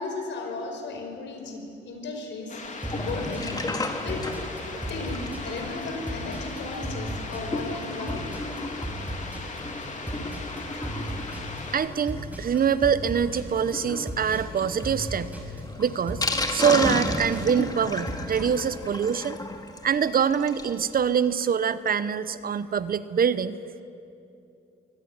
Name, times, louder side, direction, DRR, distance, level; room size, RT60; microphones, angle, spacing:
voice 1, 0.0-2.6 2.9-3.6 4.0-4.2 4.9-8.2, left 3 dB, 70° left, 4 dB, 5.1 m, -35 dB
sound 1, 2.5-11.8, left 3 dB, 40° left, 3.6 m, -38 dB
Sink (filling or washing), 2.7-20.8 21.1-21.2 21.4-21.5 21.9-22.0, left 2 dB, 20° left, 2.3 m, -34 dB
sound 2, 2.8-18.8, equal, 10° right, 6.0 m, -37 dB
voice 2, 11.7-15.3 15.8-19.4 19.8-23.6, right 7 dB, 45° right, 15 dB, 0.9 m, -24 dB
23.0 x 18.0 x 9.8 m, 2.7 s
cardioid pair, 90°, 20 cm